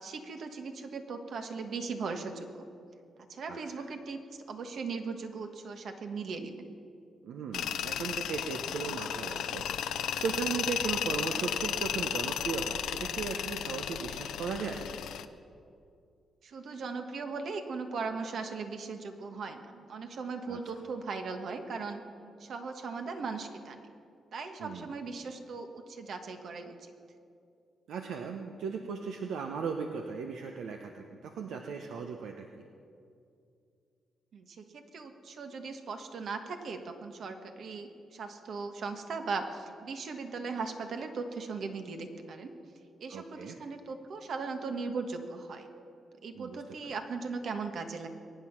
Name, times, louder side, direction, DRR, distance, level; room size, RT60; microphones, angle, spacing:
voice 1, 0.0-2.6 3.3-4.2 4.5-6.7 16.4-22.0 22.4-23.9 24.3-26.9 34.3-42.5 43.0-45.7 46.2-48.1, right 4 dB, 70° right, 6 dB, 1.4 m, -38 dB
voice 2, 3.5-3.8 7.2-14.8 20.5-20.6 24.6-24.9 27.9-32.6 43.1-43.6 46.3-46.9, right 5 dB, 85° right, 4 dB, 0.8 m, -37 dB
Tools, 7.5-15.2, left 10 dB, 90° left, 0.6 m, -34 dB
22.5 x 9.3 x 5.9 m, 2.5 s
cardioid pair, 80°, 0 cm